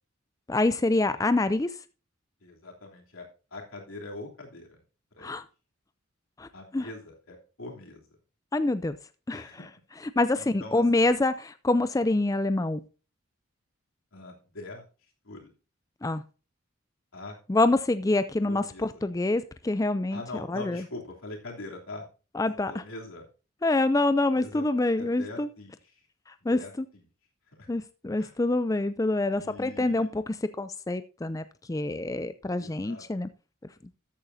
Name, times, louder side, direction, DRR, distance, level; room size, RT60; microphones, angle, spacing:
voice 1, 0.5-1.8 5.2-5.4 6.4-6.9 8.5-9.0 9.3-9.6 10.0-12.8 16.0-16.2 17.5-20.8 22.3-22.8 23.6-25.5 26.3-26.6 27.7-33.3, left 2 dB, 15° left, 12 dB, 0.4 m, -26 dB
voice 2, 2.4-4.8 5.1-5.4 6.5-8.2 9.3-9.6 10.4-11.0 14.1-14.8 15.2-15.5 17.1-17.4 18.4-19.0 20.1-22.1 22.7-23.2 24.3-24.7 25.0-26.1 26.4-26.7 27.5-27.7 28.2-28.3 29.3-30.1 32.5-33.0, left 2 dB, 85° left, 0 dB, 3.1 m, -43 dB
13.5 x 8.9 x 2.7 m, 0.34 s
head